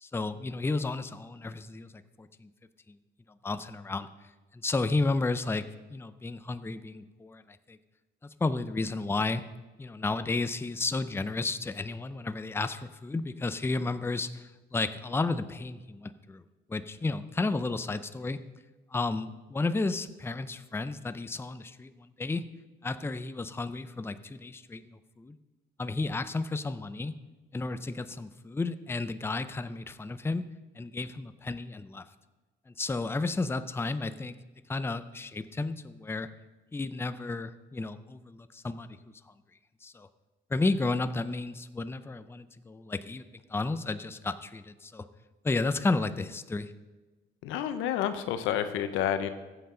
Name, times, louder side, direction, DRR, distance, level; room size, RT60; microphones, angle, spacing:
voice 1, 0.0-1.9 2.2-2.5 3.4-4.1 4.5-5.7 5.9-7.8 8.2-9.4 9.8-16.4 16.7-18.4 18.9-22.4 22.8-24.8 25.2-25.4 25.8-27.1 27.5-30.5 30.8-32.0 32.7-34.3 34.7-36.3 36.7-39.0 39.8-40.1 40.5-43.2 43.5-45.1 45.4-46.7, left 3 dB, 10° left, 12 dB, 0.5 m, -32 dB
voice 2, 47.4-49.3, left 10 dB, 90° left, 10 dB, 0.9 m, -29 dB
14.5 x 7.9 x 3.8 m, 1.2 s
cardioid pair, 90°, 20 cm